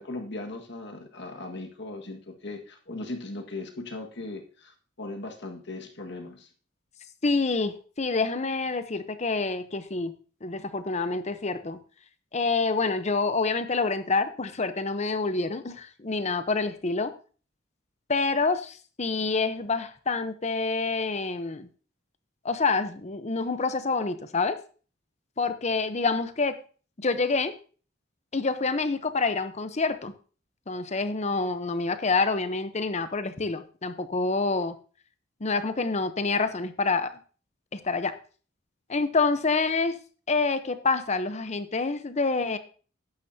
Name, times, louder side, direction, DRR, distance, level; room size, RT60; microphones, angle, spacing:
voice 1, 0.0-6.5, left 2 dB, 60° left, 3 dB, 1.7 m, -38 dB
voice 2, 7.2-10.1 10.4-11.8 12.3-17.1 18.1-21.7 22.4-24.6 25.4-26.6 27.0-27.5 28.3-30.1 30.7-34.8 35.4-37.1 37.7-38.1 38.9-40.0 40.3-42.6, left 3 dB, 35° left, 11 dB, 0.8 m, -27 dB
11.5 x 10.0 x 2.8 m, 0.39 s
head